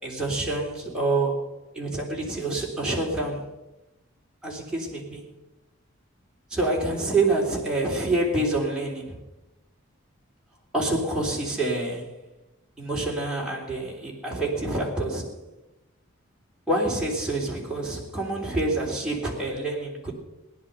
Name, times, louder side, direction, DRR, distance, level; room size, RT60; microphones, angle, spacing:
voice 1, 0.0-3.5 4.4-5.2 6.5-9.2 10.7-12.2 12.8-15.3 16.7-20.1, right 2 dB, 5° right, -4 dB, 3.5 m, -27 dB
17.5 x 11.0 x 6.8 m, 1.0 s
head